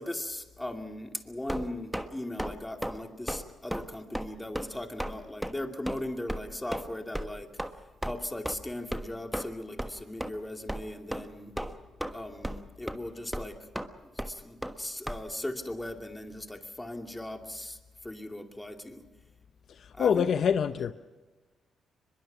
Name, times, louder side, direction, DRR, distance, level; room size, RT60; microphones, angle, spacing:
voice 1, 0.0-7.5 8.0-11.5 12.1-13.6 14.3-17.8 18.0-19.0 19.9-20.3, left 1 dB, 10° left, 2.5 m, -38 dB
sound 1, 1.5-2.1 2.4-2.5 2.8-3.0 3.3-3.4 3.7-3.8 4.1-4.3 4.5-4.7 5.0-5.1 5.4-5.5 5.9-6.0 6.3-6.4 6.7-6.9 7.1-7.3 7.6-7.7 8.0-8.1 8.4-8.5 8.9-9.1 9.3-9.5 9.8-9.9 10.2-10.3 10.7-10.8 11.1-11.3 11.6-12.1 12.4-12.6 12.9-13.0 13.3-13.5 13.7-13.9 14.2-14.3 14.6-14.7 15.1-15.2, right 1 dB, 5° right, 1.4 m, -34 dB
voice 2, 19.7-20.9, left 7 dB, 65° left, 0.6 m, -26 dB
23.5 x 22.0 x 6.0 m
cardioid pair, 75°, 0 cm